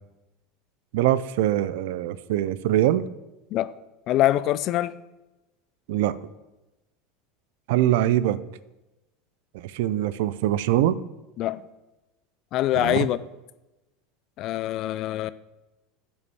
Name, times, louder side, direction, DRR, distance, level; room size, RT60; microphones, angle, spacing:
voice 1, 0.9-3.1 5.9-6.2 7.7-8.4 9.5-11.0 12.7-13.1, right 13 dB, 65° right, 18 dB, 0.5 m, -23 dB
voice 2, 4.1-5.0 11.4-11.6 12.5-13.2 14.4-15.3, left 14 dB, 50° left, 16 dB, 0.5 m, -24 dB
10.5 x 5.6 x 7.0 m, 1.0 s
figure-of-eight pair, 75°, 0 cm